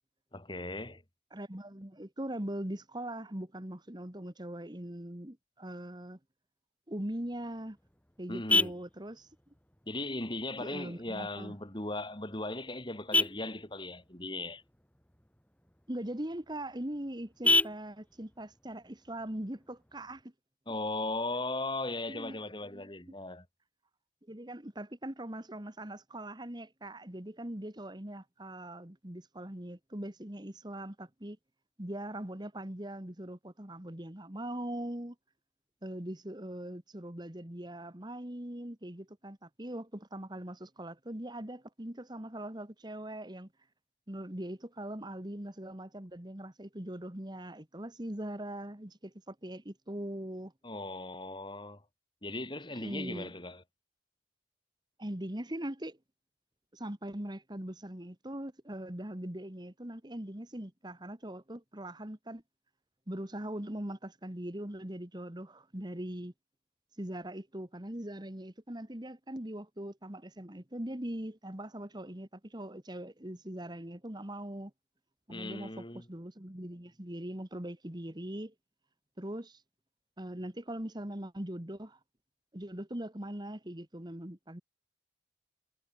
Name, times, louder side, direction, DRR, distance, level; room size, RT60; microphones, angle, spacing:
voice 1, 0.3-1.0 8.3-8.7 9.9-14.6 20.7-23.5 50.6-51.8 52.2-53.6 75.3-76.1, left 2 dB, 25° left, 3.8 m, -38 dB
voice 2, 1.3-6.2 6.9-7.8 8.2-9.3 10.6-11.5 15.9-20.3 22.1-22.4 22.7-22.8 24.3-31.4 31.8-35.2 35.8-43.5 44.1-50.5 52.7-53.3 55.0-56.0 56.7-62.4 63.1-66.3 67.0-74.7 75.3-78.5 79.2-79.6 80.2-82.0 82.5-84.6, right 1 dB, 25° right, 1.9 m, -41 dB
Vehicle horn car horn honking, 7.2-20.2, left 2 dB, 10° left, 4.1 m, -35 dB
head